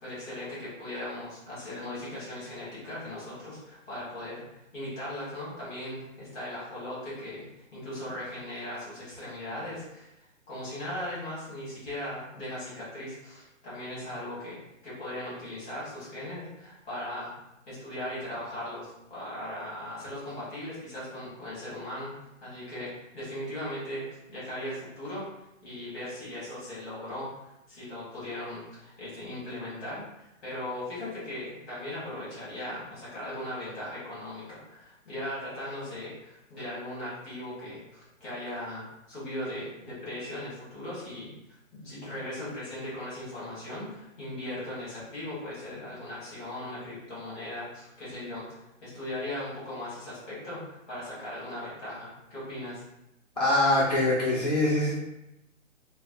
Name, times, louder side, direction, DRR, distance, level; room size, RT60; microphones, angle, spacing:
voice 1, 0.0-4.4 4.7-7.4 7.7-10.1 10.5-14.6 14.8-17.3 17.7-22.1 22.4-25.2 25.6-27.3 27.7-41.3 41.7-52.8, left 1 dB, 10° left, -9 dB, 0.8 m, -38 dB
voice 2, 53.4-55.0, left 1 dB, 35° left, -8 dB, 0.4 m, -24 dB
3.2 x 2.0 x 2.5 m, 0.88 s
hypercardioid pair, 170°, 39 cm